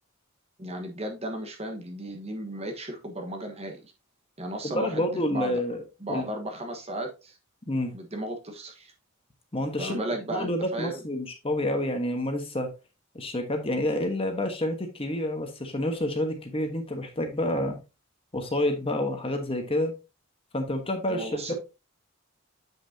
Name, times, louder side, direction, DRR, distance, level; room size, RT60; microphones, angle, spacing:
voice 1, 0.6-3.9 4.4-5.6 6.0-7.4 7.9-8.9 9.8-11.0 21.1-21.5, right 1 dB, 30° right, 4 dB, 1.3 m, -35 dB
voice 2, 4.6-5.8 6.1-6.2 7.7-7.9 9.5-10.0 10.3-12.7 13.1-17.8 18.3-19.9 20.5-21.3, left 1 dB, 25° left, 5 dB, 1.2 m, -28 dB
7.8 x 6.2 x 2.8 m, 0.27 s
head